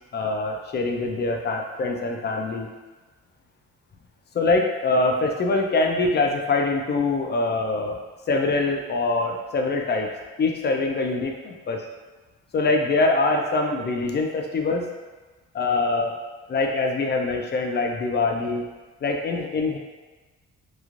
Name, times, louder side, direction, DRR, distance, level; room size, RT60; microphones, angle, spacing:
voice 1, 0.1-2.7 4.3-8.0 8.3-10.1 10.4-11.8 12.5-14.9 15.5-16.2 16.5-18.6 19.0-19.8, left 3 dB, 35° left, 2 dB, 0.4 m, -24 dB
3.1 x 2.3 x 2.5 m, 1.2 s
cardioid pair, 90°, 30 cm